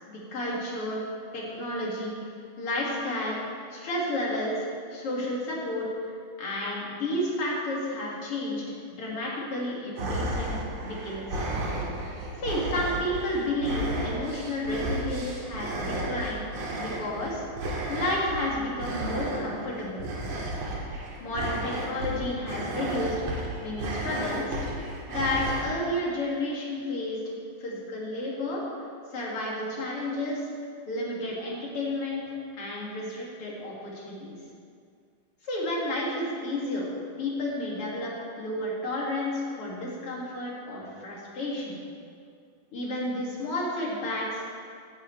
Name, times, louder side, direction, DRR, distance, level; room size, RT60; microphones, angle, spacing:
voice 1, 0.1-1.0 1.3-3.4 3.7-5.9 6.4-8.6 9.0-10.5 10.8-11.4 12.4-16.5 16.8-20.1 21.2-24.6 25.1-27.2 27.6-28.6 29.1-30.5 30.9-32.2 32.6-34.4 35.4-36.9 37.2-38.1 38.4-41.8 42.7-44.5, left 1 dB, 45° left, -4 dB, 2.9 m, -31 dB
sound 1, 10.0-25.6, right 1 dB, 55° right, 2.8 m, -33 dB
17.0 x 10.5 x 3.3 m, 2.3 s
omnidirectional pair, 4.0 m